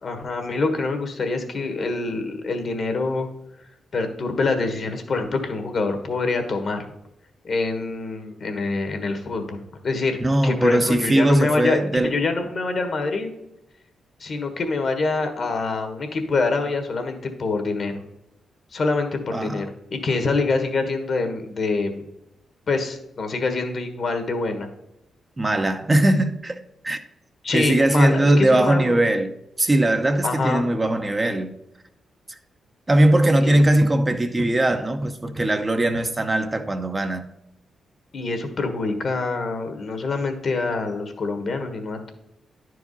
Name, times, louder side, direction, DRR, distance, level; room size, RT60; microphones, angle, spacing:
voice 1, 0.0-3.3 3.9-6.9 7.4-10.2 10.4-13.3 14.2-17.9 18.7-22.0 22.7-24.7 27.4-29.0 30.2-30.6 33.4-33.6 38.1-42.1, left 3 dB, 55° left, 1.5 m, -25 dB
voice 2, 10.2-12.1 19.3-19.6 25.4-26.6 26.8-27.0 27.5-29.3 29.6-31.5 32.9-37.3, right 1 dB, 25° right, 0.7 m, -20 dB
10.5 x 4.7 x 4.1 m
cardioid pair, 80°, 0 cm